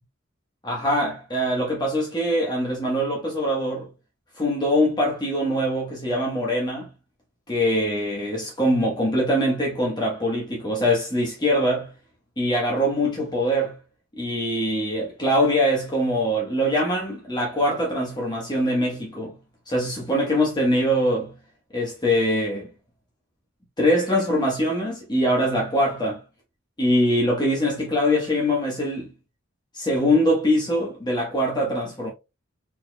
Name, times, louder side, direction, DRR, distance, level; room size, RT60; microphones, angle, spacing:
voice 1, 0.6-3.9 4.4-6.9 7.5-11.9 12.4-13.7 14.2-19.3 19.7-21.3 21.7-22.7 23.8-26.2 26.8-29.1 29.7-32.1, equal, 20° left, 1.3 m, -23 dB
4.4 x 4.2 x 2.3 m
head